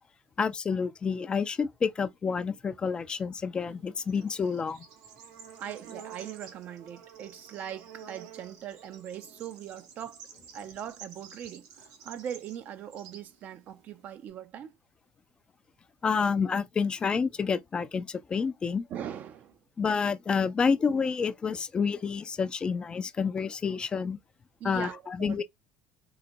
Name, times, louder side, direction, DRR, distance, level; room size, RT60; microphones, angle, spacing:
voice 1, 0.4-4.8 16.0-18.9 19.8-24.2 24.6-25.4, left 5 dB, 25° left, 0.3 m, -29 dB
Bird / Insect, 3.7-14.3, right 7 dB, 85° right, 0.9 m, -50 dB
voice 2, 5.6-10.3 10.5-14.8 18.9-19.6 24.6-25.4, right 9 dB, 50° right, 0.4 m, -41 dB
3.9 x 2.1 x 2.5 m
supercardioid pair, 110°, 4 cm